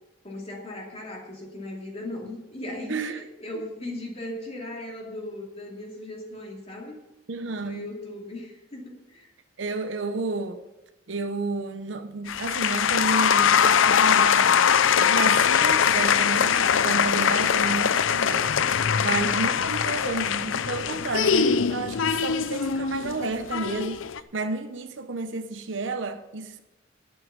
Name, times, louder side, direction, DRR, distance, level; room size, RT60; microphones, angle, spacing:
voice 1, 0.2-7.0 7.6-9.3 18.9-19.3, left 1 dB, 35° left, 2.5 m, -38 dB
voice 2, 2.9-3.2 3.5-3.6 7.3-7.9 9.6-10.6 11.1-14.7 15.0-18.5 19.0-24.1 24.3-26.6, right 3 dB, 75° right, 0.8 m, -31 dB
sound 1, 12.3-24.2, left 7 dB, 90° left, 0.5 m, -22 dB
10.5 x 7.7 x 8.0 m
head